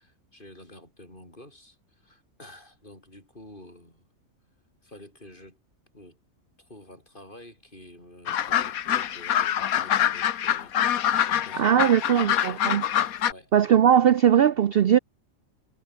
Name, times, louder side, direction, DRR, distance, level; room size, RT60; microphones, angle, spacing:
voice 1, 0.0-4.1 4.8-5.6 5.9-6.2 6.6-12.8 13.3-13.5, left 1 dB, 35° left, 7.7 m, -49 dB
sound 1, 8.3-13.3, left 10 dB, 80° left, 1.4 m, -25 dB
voice 2, 11.6-12.8 13.5-15.0, right 9 dB, 55° right, 0.7 m, -19 dB
omnidirectional pair, 1.5 m